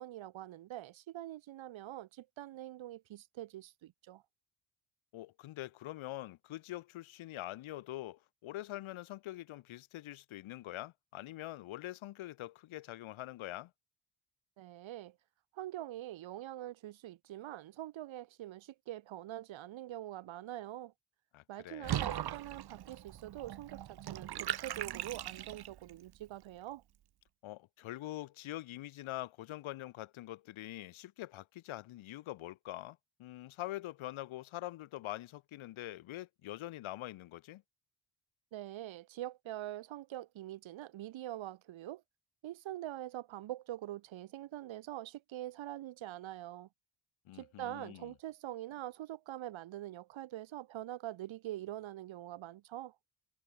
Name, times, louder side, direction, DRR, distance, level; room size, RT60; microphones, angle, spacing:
voice 1, 0.0-4.2 14.6-15.1 15.5-20.9 21.5-26.8 38.5-42.0 42.4-46.7 47.3-52.9, right 14 dB, 70° right, 1.3 m, -44 dB
voice 2, 5.1-13.7 21.3-22.2 27.4-37.6 47.3-48.1, left 15 dB, 75° left, 1.2 m, -44 dB
Water / Bathtub (filling or washing), 21.8-25.9, right 11 dB, 50° right, 1.0 m, -39 dB
cardioid pair, 90°, 49 cm